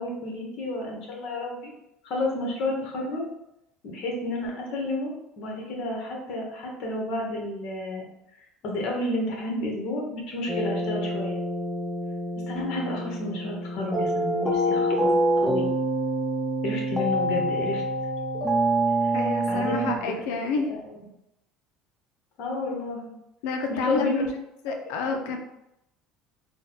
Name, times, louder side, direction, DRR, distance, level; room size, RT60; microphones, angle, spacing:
voice 1, 0.0-1.7 2.0-3.3 3.8-8.0 8.6-11.4 12.5-15.1 15.4-15.7 16.6-17.8 19.0-19.1 19.5-20.1 20.7-20.8 22.4-23.1 23.7-24.3 24.9-25.4, left 1 dB, 60° left, -1 dB, 1.4 m, -31 dB
sound 1, 10.5-20.0, right 1 dB, ahead, 0.6 m, -26 dB
voice 2, 19.1-20.7 23.4-24.1 24.6-25.4, left 4 dB, 80° left, 4 dB, 0.6 m, -29 dB
3.9 x 2.3 x 4.0 m, 0.84 s
supercardioid pair, 110°, 0 cm